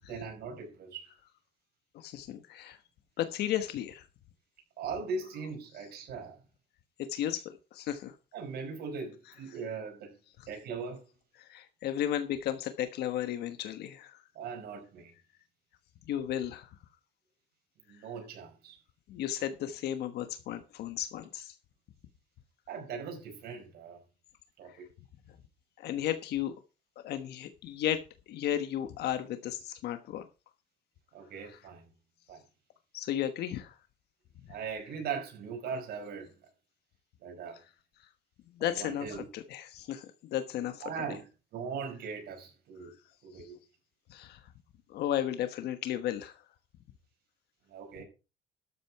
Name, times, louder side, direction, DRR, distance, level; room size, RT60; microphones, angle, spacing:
voice 1, 0.1-1.1 4.8-6.4 8.3-10.1 10.5-11.0 14.3-15.1 17.9-18.8 22.7-24.0 24.6-24.9 31.1-31.8 32.3-32.4 34.5-36.3 37.2-37.6 38.6-39.3 40.8-41.2 41.5-42.9 43.2-43.5 47.7-48.0, right 5 dB, 70° right, 5.0 m, -39 dB
voice 2, 1.9-2.8 3.2-4.1 7.1-8.1 11.4-14.2 16.1-16.7 19.1-21.6 24.7-24.8 25.8-26.5 27.0-30.2 31.5-31.6 32.9-33.7 38.6-41.0 42.8-42.9 43.3-43.5 44.1-44.4 44.9-46.4, left 11 dB, 75° left, 1.3 m, -34 dB
12.5 x 8.7 x 4.7 m
cardioid pair, 110°, 17 cm